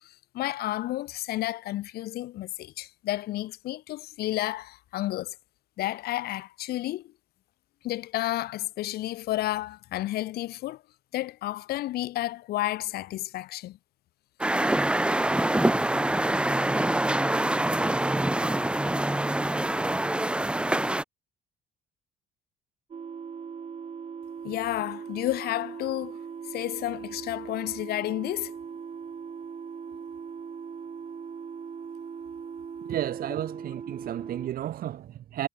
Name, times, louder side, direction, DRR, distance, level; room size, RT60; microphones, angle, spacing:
voice 1, 0.0-5.3 5.8-7.1 7.8-10.8 11.1-13.8 24.4-26.2 26.5-28.5 29.9-30.0, left 15 dB, 70° left, 0.7 m, -31 dB
sound 1, 14.4-21.0, right 1 dB, 5° right, 1.0 m, -25 dB
sound 2, 22.9-34.5, right 6 dB, 35° right, 6.0 m, -39 dB
voice 2, 32.9-35.5, right 12 dB, 60° right, 1.5 m, -32 dB
cardioid pair, 110°, 17 cm